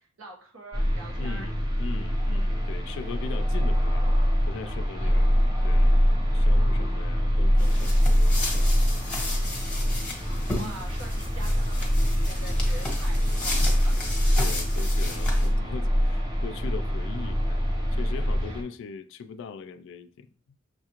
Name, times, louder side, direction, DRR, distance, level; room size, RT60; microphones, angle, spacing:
voice 1, 0.0-1.5 5.0-5.4 10.5-14.2 17.9-18.6, right 2 dB, 80° right, 1.0 m, -46 dB
sound 1, 0.7-18.6, equal, 20° right, 0.7 m, -24 dB
voice 2, 1.2-4.1 4.5-6.0 6.3-8.8 13.1-13.2 14.4-20.3, left 5 dB, 65° left, 0.3 m, -40 dB
sound 2, 7.6-15.5, left 2 dB, 5° left, 1.0 m, -35 dB
6.4 x 2.4 x 2.8 m
head